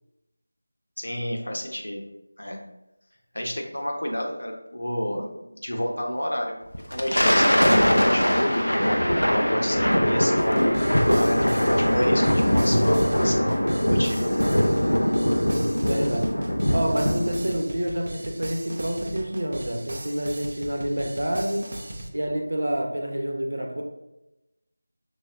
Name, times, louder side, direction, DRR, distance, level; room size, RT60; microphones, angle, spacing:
voice 1, 1.0-2.0 2.4-2.6 3.3-5.3 5.6-6.5 6.9-8.9 9.2-14.4, equal, 65° left, 1 dB, 1.1 m, -30 dB
Thunder, 6.7-17.5, equal, 85° left, 0.6 m, -21 dB
sound 1, 10.4-22.1, right 1 dB, 45° right, 0.6 m, -38 dB
voice 2, 15.9-16.4 16.7-21.7 22.1-23.8, right 1 dB, 60° right, 2 dB, 0.9 m, -28 dB
6.0 x 3.5 x 2.6 m, 0.95 s
figure-of-eight pair, 170°, 0 cm